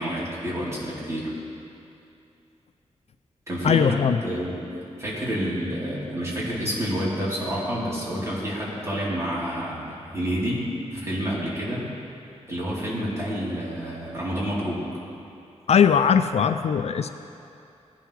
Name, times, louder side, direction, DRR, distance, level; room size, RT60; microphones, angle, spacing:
voice 1, 0.0-1.3 3.5-4.0 4.2-4.6 5.0-10.6 10.9-11.9 12.5-15.0, equal, 25° right, -7 dB, 3.5 m, -29 dB
voice 2, 3.6-4.2 15.7-17.1, left 7 dB, 60° left, 10 dB, 0.4 m, -20 dB
18.5 x 11.0 x 3.3 m, 2.7 s
wide cardioid pair, 150°, 12 cm